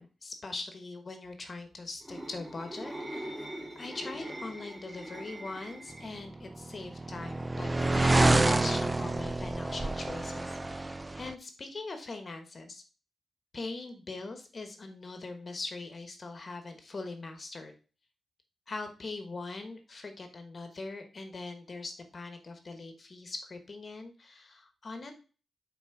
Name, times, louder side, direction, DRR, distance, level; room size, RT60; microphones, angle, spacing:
voice 1, 0.0-3.3 3.7-12.8 13.5-17.7 18.7-25.1, left 3 dB, 40° left, 6 dB, 1.0 m, -42 dB
sound 1, 2.0-6.2 8.3-8.6, right 1 dB, 5° right, 2.5 m, -41 dB
sound 2, 6.4-11.3, right 2 dB, 20° right, 0.3 m, -28 dB
6.0 x 4.0 x 5.8 m, 0.36 s
wide cardioid pair, 120°, 0 cm